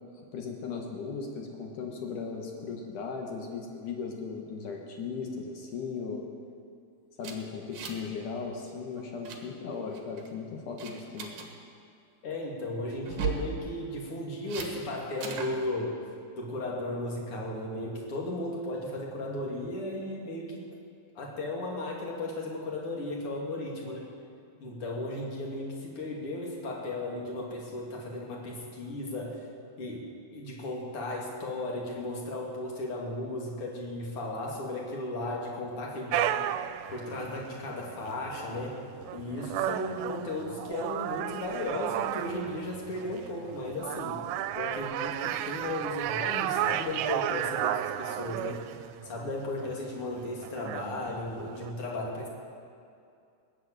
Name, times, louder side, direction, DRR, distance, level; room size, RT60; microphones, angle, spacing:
voice 1, 0.3-6.2 7.2-11.3, left 5 dB, 65° left, 2 dB, 2.2 m, -37 dB
sound 1, 7.2-8.1 8.4-8.6 9.0-9.4 9.9-10.3 10.8-11.5 13.0-13.5 14.5-14.7 15.2-15.5, right 7 dB, 60° right, 2.5 m, -36 dB
voice 2, 12.2-16.0 16.3-20.7 21.1-24.1 24.6-29.5 29.8-30.0 30.3-36.5 36.9-38.8 39.1-44.2 44.6-48.6 49.0-52.3, left 1 dB, 40° left, -2 dB, 2.8 m, -35 dB
sound 2, 36.1-51.7, right 13 dB, 85° right, 2.7 m, -34 dB
20.5 x 8.0 x 8.8 m, 2.4 s
omnidirectional pair, 5.0 m